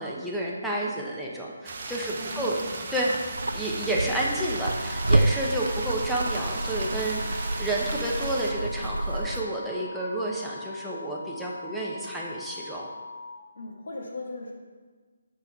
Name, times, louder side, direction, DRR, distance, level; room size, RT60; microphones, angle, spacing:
voice 1, 0.0-2.6 2.9-3.1 3.5-12.9, right 1 dB, ahead, -5 dB, 1.1 m, -30 dB
sound 1, 1.6-8.5, right 3 dB, 40° right, 1.0 m, -37 dB
voice 2, 2.1-2.8 13.5-14.5, left 2 dB, 60° left, -1 dB, 1.7 m, -38 dB
sound 2, 3.3-9.4, right 2 dB, 80° right, 0.3 m, -29 dB
sound 3, 4.6-13.4, left 3 dB, 75° left, 1.4 m, -41 dB
8.1 x 5.4 x 4.6 m, 1.4 s
figure-of-eight pair, 145°, 0 cm